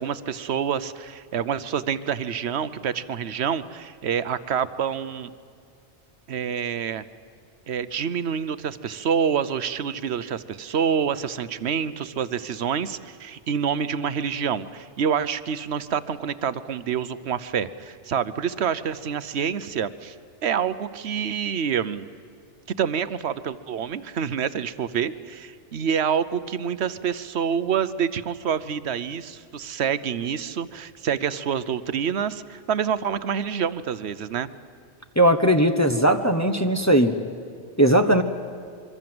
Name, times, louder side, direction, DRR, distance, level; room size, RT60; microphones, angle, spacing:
voice 1, 0.0-5.3 6.3-7.0 7.7-20.1 20.4-22.1 22.8-34.5, right 7 dB, 65° right, 14 dB, 1.1 m, -27 dB
voice 2, 35.2-37.1 37.8-38.2, right 1 dB, 15° left, 5 dB, 1.0 m, -18 dB
25.5 x 23.5 x 7.8 m, 2.3 s
omnidirectional pair, 1.2 m